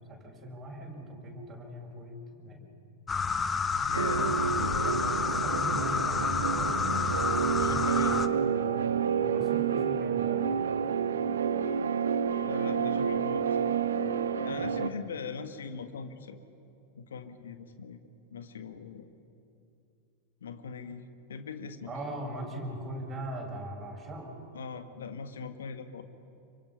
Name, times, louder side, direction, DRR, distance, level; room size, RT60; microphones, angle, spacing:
voice 1, 0.1-2.6 4.8-6.8 7.3-7.8 8.6-8.9 9.2-10.5 14.5-14.6 21.9-24.3, right 1 dB, 20° right, -2 dB, 7.0 m, -40 dB
sound 1, 3.1-8.3, left 5 dB, 15° left, 0.9 m, -29 dB
voice 2, 3.9-5.5 7.6-8.3 12.4-13.7 14.4-16.4 16.9-18.0 18.3-19.1 20.4-21.9 24.5-26.0, left 5 dB, 65° left, 8 dB, 1.6 m, -41 dB
sound 2, 3.9-14.9, right 7 dB, 65° right, 0.8 m, -29 dB
28.5 x 24.0 x 5.8 m, 2.6 s
figure-of-eight pair, 90°, 0 cm